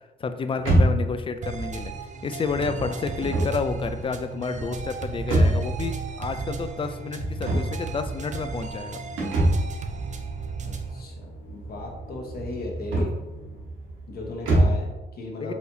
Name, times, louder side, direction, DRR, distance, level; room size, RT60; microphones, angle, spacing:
voice 1, 0.2-1.9 2.2-9.0 15.4-15.5, left 4 dB, 25° left, 9 dB, 0.4 m, -30 dB
sound 1, 0.6-14.9, right 1 dB, 90° right, 1.2 m, -27 dB
sound 2, 1.4-11.0, right 5 dB, 40° right, 0.5 m, -35 dB
sound 3, 7.7-13.7, equal, 75° left, 1.0 m, -44 dB
voice 2, 10.6-13.1 14.1-15.5, left 2 dB, 50° left, -1 dB, 1.0 m, -36 dB
4.5 x 3.3 x 2.7 m, 1.1 s
cardioid pair, 90°, 20 cm